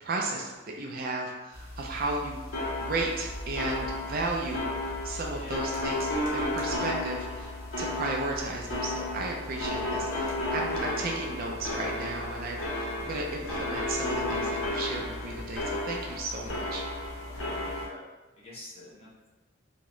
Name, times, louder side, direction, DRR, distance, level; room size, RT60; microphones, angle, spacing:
voice 1, 0.0-2.4 2.8-16.8, right 2 dB, 45° right, 0 dB, 0.4 m, -34 dB
sound 1, 1.5-17.9, left 1 dB, 75° left, 0.8 m, -33 dB
voice 2, 17.3-18.0 18.4-19.3, left 1 dB, 30° left, -7 dB, 0.9 m, -47 dB
3.6 x 2.1 x 3.0 m, 1.2 s
head